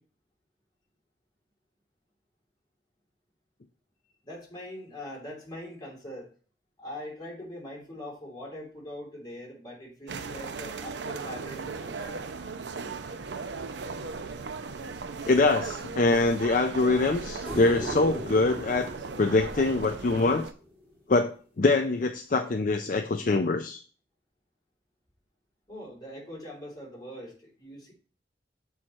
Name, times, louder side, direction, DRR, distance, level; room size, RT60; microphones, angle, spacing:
voice 1, 4.2-6.3 6.8-12.2 25.7-27.9, left 1 dB, 25° left, -3 dB, 3.1 m, -42 dB
sound 1, 10.1-20.5, right 4 dB, 75° right, 0.6 m, -37 dB
voice 2, 15.3-18.9 19.2-20.5 21.1-23.8, left 3 dB, 45° left, 6 dB, 0.5 m, -24 dB
sound 2, 17.4-20.7 23.3-23.4, equal, 10° right, 2.7 m, -39 dB
7.3 x 4.7 x 4.3 m, 0.40 s
head